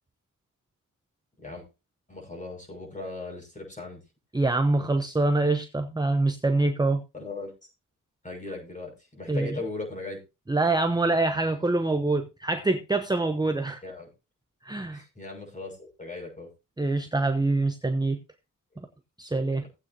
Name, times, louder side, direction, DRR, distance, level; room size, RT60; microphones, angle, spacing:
voice 1, 2.1-4.0 7.1-7.7 8.2-10.2 13.8-14.1 14.8-16.5 19.5-19.7, left 3 dB, 25° left, 6.2 m, -38 dB
voice 2, 4.3-7.0 9.3-9.5 10.5-13.8 14.6-15.0 16.8-18.2 19.2-19.6, right 2 dB, 10° right, 0.8 m, -25 dB
17.5 x 8.4 x 2.8 m
wide cardioid pair, 100°, 33 cm